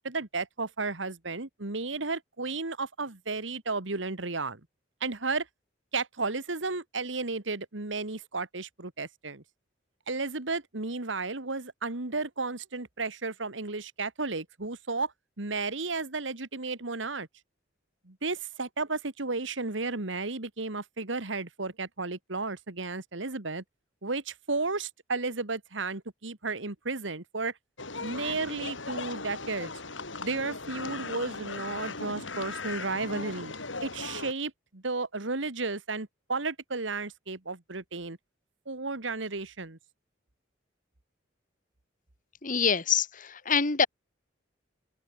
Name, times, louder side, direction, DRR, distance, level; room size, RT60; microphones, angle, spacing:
voice 1, 0.0-4.6 5.0-5.5 5.9-9.4 10.1-17.3 18.1-23.6 24.0-27.5 28.0-29.7 30.2-33.5 33.8-38.2 38.7-39.8, right 3 dB, 80° right, 2.0 m, -33 dB
sound 1, 27.8-34.3, left 3 dB, 80° left, 5.7 m, -38 dB
voice 2, 42.4-43.9, left 6 dB, 45° left, 1.6 m, -25 dB
open air
head